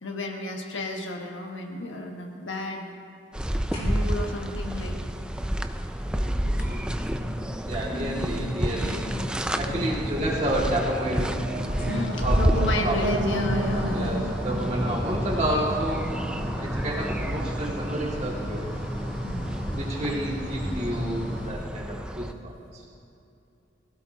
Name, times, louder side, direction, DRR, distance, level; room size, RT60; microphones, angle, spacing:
voice 1, 0.0-2.9 3.8-5.0 7.9-8.5 9.1-9.3 9.7-10.0 11.9-14.3 19.2-19.6, left 2 dB, 90° left, 2 dB, 1.4 m, -33 dB
sound 1, 3.3-22.3, equal, 5° right, 0.4 m, -30 dB
sound 2, 3.7-4.3 5.7-5.8 6.6-21.6, equal, 35° left, 3.6 m, -36 dB
voice 2, 6.1-9.0 9.6-11.3 12.2-13.1 13.9-16.1 16.6-18.6 19.7-22.9, right 1 dB, 35° right, -4 dB, 2.1 m, -30 dB
sound 3, 11.0-16.1, right 1 dB, 65° right, 1.6 m, -32 dB
22.5 x 16.0 x 2.8 m, 2.8 s
head